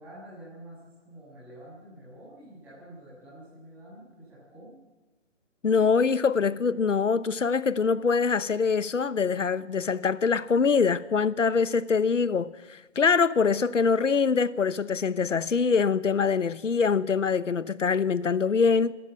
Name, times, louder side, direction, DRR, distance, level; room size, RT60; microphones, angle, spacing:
voice 1, 0.0-4.8, right 1 dB, 5° right, 6.9 m, -48 dB
voice 2, 5.6-18.9, left 5 dB, 80° left, 1.1 m, -24 dB
25.5 x 14.0 x 9.1 m
hypercardioid pair, 170°, 37 cm